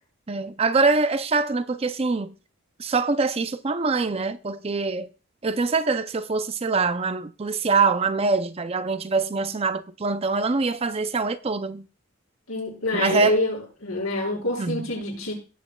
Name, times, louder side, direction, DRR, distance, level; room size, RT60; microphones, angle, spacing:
voice 1, 0.3-2.3 2.8-5.1 5.4-11.9 12.9-13.4 14.6-14.9, right 4 dB, 30° right, 0.5 m, -24 dB
voice 2, 12.5-15.3, left 2 dB, 90° left, 6.5 m, -26 dB
18.0 x 8.0 x 2.3 m
head